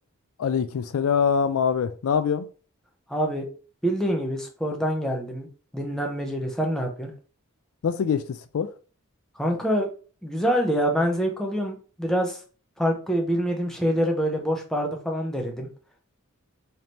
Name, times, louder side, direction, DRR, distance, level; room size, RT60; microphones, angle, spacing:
voice 1, 0.4-2.5 7.8-8.7, left 6 dB, 65° left, 0.4 m, -24 dB
voice 2, 3.1-3.5 3.8-5.5 5.7-7.1 9.4-9.9 10.2-12.4 12.8-15.7, equal, ahead, 0.8 m, -25 dB
4.3 x 2.9 x 3.2 m
head